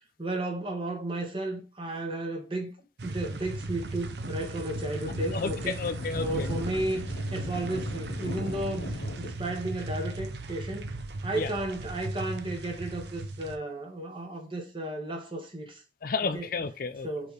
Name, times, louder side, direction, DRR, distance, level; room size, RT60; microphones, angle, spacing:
voice 1, 0.2-2.7 3.0-5.8 6.2-10.9 11.2-15.8 16.3-16.5 17.0-17.3, right 1 dB, 30° right, 1.5 m, -33 dB
sound 1, 3.0-13.6, right 2 dB, 65° right, 0.7 m, -37 dB
Thunder, 3.8-12.9, left 1 dB, 75° left, 1.0 m, -40 dB
voice 2, 5.3-6.5 11.3-11.5 16.0-17.1, left 4 dB, 50° left, 0.5 m, -31 dB
5.1 x 4.4 x 4.5 m
head